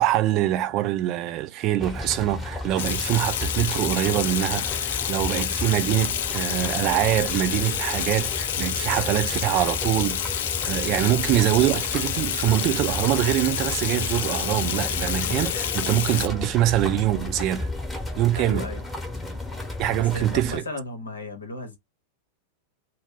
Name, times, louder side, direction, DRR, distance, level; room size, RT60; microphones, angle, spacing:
voice 1, 0.0-17.7 18.2-18.7 19.8-20.6, right 14 dB, 40° right, 0.4 m, -24 dB
sound 1, 1.8-20.6, left 2 dB, 5° left, 0.9 m, -33 dB
Water tap faucet / Sink (filling or washing), 2.8-16.3, left 10 dB, 60° left, 0.3 m, -28 dB
voice 2, 18.4-18.8 20.0-21.8, left 2 dB, 75° left, 0.9 m, -35 dB
2.2 x 2.2 x 3.4 m
figure-of-eight pair, 90°, 0 cm